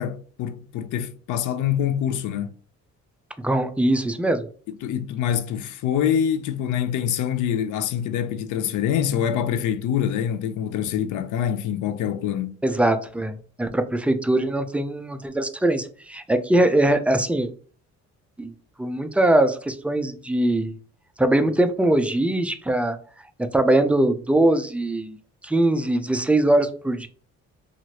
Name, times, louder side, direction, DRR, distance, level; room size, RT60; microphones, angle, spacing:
voice 1, 0.0-2.6 4.7-12.6, left 9 dB, 80° left, 0.5 m, -25 dB
voice 2, 3.4-4.4 12.6-17.5 18.4-18.5 18.8-20.7 21.2-23.0 23.4-25.2 25.4-27.1, right 1 dB, 5° right, 0.3 m, -21 dB
3.0 x 2.5 x 2.8 m
cardioid pair, 90°, 30 cm